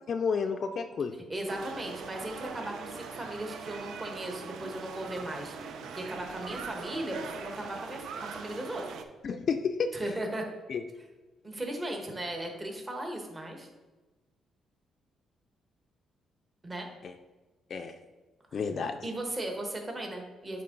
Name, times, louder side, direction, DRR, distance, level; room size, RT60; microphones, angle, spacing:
voice 1, 0.1-1.1 9.2-9.9 10.7-10.8 17.0-17.1 17.7-18.0 18.5-19.0, left 5 dB, 55° left, 6 dB, 0.4 m, -30 dB
voice 2, 1.3-8.9 9.9-10.5 11.4-13.7 16.6-16.9 18.5-18.6 19.0-20.6, right 1 dB, 25° right, 2 dB, 1.3 m, -37 dB
sound 1, 1.5-9.0, right 5 dB, 75° right, 0.6 m, -42 dB
8.5 x 3.5 x 3.9 m, 1.2 s
cardioid pair, 90°, 0 cm